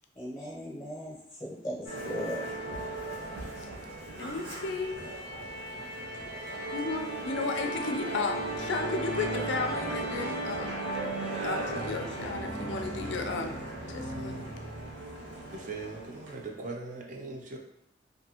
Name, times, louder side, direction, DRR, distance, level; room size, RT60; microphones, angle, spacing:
voice 1, 0.2-2.4, equal, 20° left, -6 dB, 0.6 m, -38 dB
Musical instrument, 1.9-16.5, right 1 dB, 85° right, 0.8 m, -36 dB
voice 2, 4.2-5.0 6.7-10.8 11.4-13.6 13.9-14.4, left 4 dB, 75° left, 5 dB, 0.4 m, -34 dB
voice 3, 15.7-17.6, right 3 dB, 40° right, 1 dB, 0.4 m, -39 dB
2.6 x 2.6 x 2.8 m, 0.77 s
head